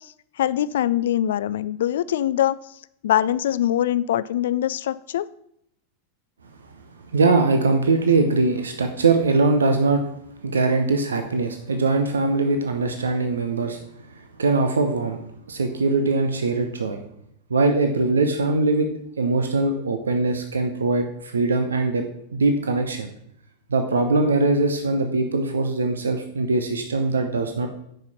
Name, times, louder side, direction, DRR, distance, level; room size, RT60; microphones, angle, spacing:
voice 1, 0.0-5.3, left 11 dB, 60° left, 18 dB, 0.3 m, -23 dB
voice 2, 7.1-10.0 10.4-13.8 14.1-15.2 15.5-17.0 17.5-18.9 19.2-22.0 22.3-23.1 23.7-27.7, right 3 dB, 70° right, 6 dB, 0.8 m, -21 dB
9.1 x 5.6 x 5.7 m, 0.72 s
figure-of-eight pair, 90°, 0 cm